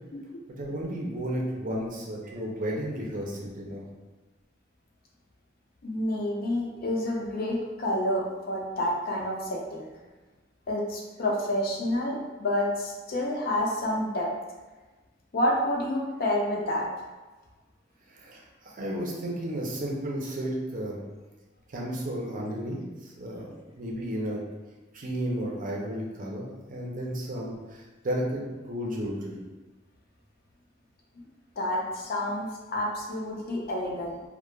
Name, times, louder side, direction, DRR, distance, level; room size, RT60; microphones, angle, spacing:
voice 1, 0.6-3.8 18.1-21.0 21.7-23.5 23.8-24.4 24.9-29.4, equal, 45° right, -2 dB, 0.5 m, -33 dB
voice 2, 5.8-9.9 10.7-14.3 15.3-16.8 31.6-34.2, left 1 dB, 50° left, -1 dB, 0.5 m, -29 dB
2.3 x 2.1 x 3.1 m, 1.2 s
head